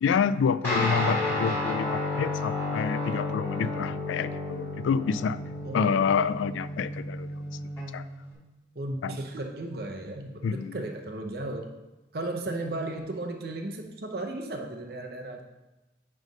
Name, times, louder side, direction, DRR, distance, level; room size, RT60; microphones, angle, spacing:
voice 1, 0.0-5.4 5.7-7.3 7.9-8.0 9.0-9.2 10.4-10.7, left 6 dB, 90° left, 15 dB, 0.3 m, -28 dB
Guitar, 0.6-8.3, left 2 dB, 15° left, 2.2 m, -32 dB
voice 2, 5.6-6.0 8.7-11.7 12.1-15.4, right 2 dB, 55° right, 3 dB, 0.7 m, -35 dB
9.1 x 3.3 x 5.2 m, 1.1 s
head